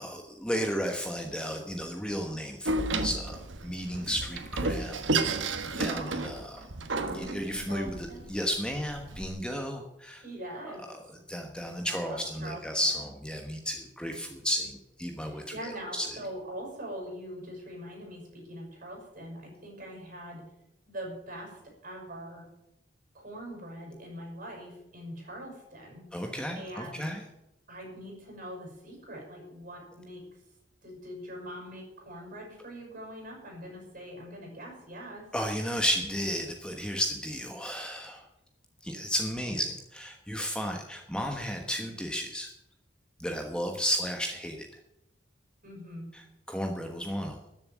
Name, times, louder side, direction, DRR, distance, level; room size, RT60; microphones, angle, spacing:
voice 1, 0.0-5.0 5.8-6.6 7.1-10.2 11.3-15.4 15.9-16.2 26.1-27.2 35.3-38.2 38.8-42.5 43.2-44.7 46.5-47.4, equal, 5° left, 3 dB, 1.2 m, -33 dB
Door, 2.6-9.3, right 3 dB, 85° right, 1.4 m, -32 dB
voice 2, 5.9-6.3 7.4-8.3 9.5-9.6 10.2-10.8 11.9-13.0 14.5-14.6 15.2-20.4 20.9-22.5 23.1-26.1 26.5-27.1 27.7-30.2 30.8-35.3 45.6-46.1, equal, 45° right, 0 dB, 7.1 m, -43 dB
13.5 x 7.5 x 9.4 m, 0.87 s
head